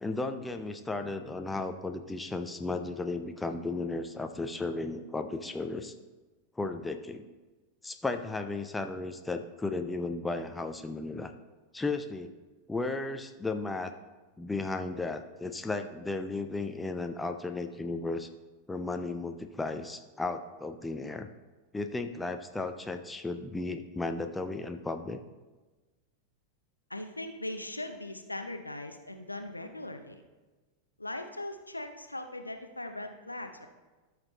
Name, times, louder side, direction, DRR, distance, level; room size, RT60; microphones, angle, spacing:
voice 1, 0.0-5.9 6.6-7.3 7.8-11.3 11.7-12.3 12.7-13.9 14.4-18.3 18.7-21.3 21.7-25.2, left 3 dB, 10° left, 7 dB, 0.5 m, -34 dB
voice 2, 26.9-30.2 31.0-33.7, left 1 dB, 85° left, 7 dB, 0.6 m, -39 dB
13.0 x 5.9 x 3.2 m, 1.2 s
figure-of-eight pair, 90°, 0 cm